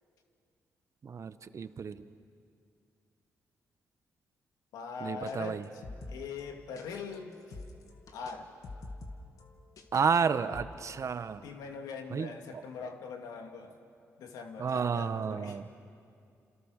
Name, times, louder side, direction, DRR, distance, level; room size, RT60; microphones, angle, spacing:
voice 1, 1.0-2.0 5.0-5.6 9.9-11.4 12.1-12.3 14.6-15.7, right 6 dB, 55° right, 12 dB, 1.2 m, -31 dB
voice 2, 4.7-5.8 6.1-7.4 8.1-8.5 11.4-13.7 14.2-15.6, left 5 dB, 85° left, 4 dB, 2.4 m, -42 dB
sound 1, 5.3-5.4 5.6-6.9 7.1-8.4 8.6-10.2 10.5-11.0, left 2 dB, 65° left, 2.4 m, -47 dB
28.5 x 27.0 x 6.7 m, 2.4 s
supercardioid pair, 55°, 6 cm